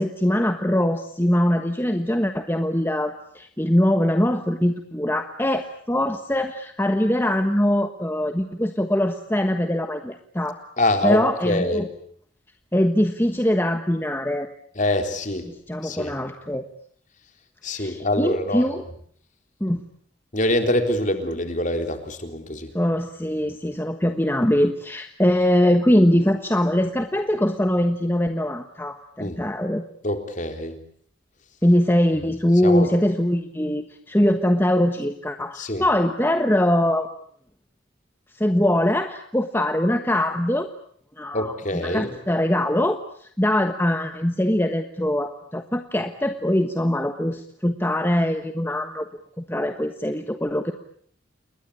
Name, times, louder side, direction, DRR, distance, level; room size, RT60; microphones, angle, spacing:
voice 1, 0.0-10.6 11.0-11.8 12.7-14.5 15.7-16.7 17.7-18.8 19.6-19.8 22.7-29.8 31.6-37.1 38.3-40.7 41.2-41.5 41.8-49.0 49.5-50.7, left 1 dB, 10° left, 6 dB, 1.2 m, -22 dB
voice 2, 10.8-11.9 14.8-15.5 15.8-16.2 17.6-18.8 20.3-22.7 29.2-29.4 30.0-30.8 32.6-32.9 35.6-35.9 41.3-42.1, left 1 dB, 40° left, 6 dB, 3.8 m, -25 dB
29.0 x 21.5 x 8.6 m, 0.62 s
head